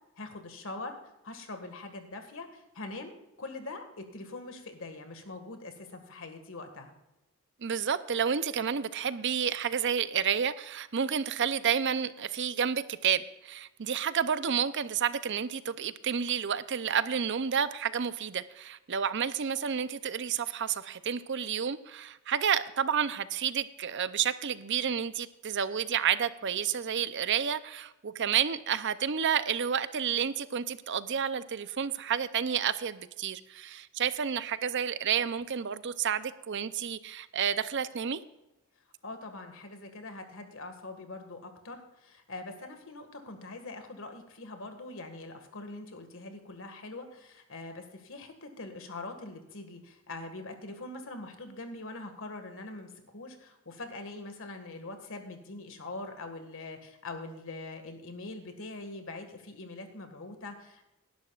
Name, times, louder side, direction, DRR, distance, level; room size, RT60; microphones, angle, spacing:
voice 1, 0.2-0.9 1.2-6.9 39.0-60.8, left 2 dB, 65° left, 6 dB, 1.8 m, -43 dB
voice 2, 7.6-38.2, right 7 dB, 55° right, 14 dB, 0.6 m, -30 dB
18.0 x 11.5 x 2.4 m, 0.95 s
head